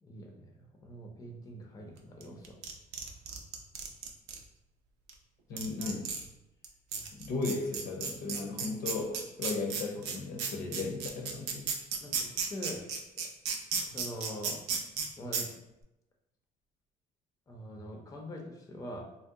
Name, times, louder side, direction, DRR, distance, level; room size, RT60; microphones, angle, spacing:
voice 1, 0.0-2.6 5.5-5.6 12.0-12.8 13.2-13.3 13.8-14.6 15.2-15.5 17.5-19.0, equal, 20° left, 1 dB, 0.5 m, -43 dB
sound 1, 2.2-4.4 5.1-5.2 5.6-6.3 6.6-6.7 6.9-15.1 15.3-15.4, right 6 dB, 80° right, 0.5 m, -33 dB
voice 2, 5.5-6.1 7.1-11.6, left 3 dB, 60° left, 1 dB, 0.6 m, -36 dB
2.7 x 2.1 x 3.5 m, 0.90 s
cardioid pair, 110°, 17 cm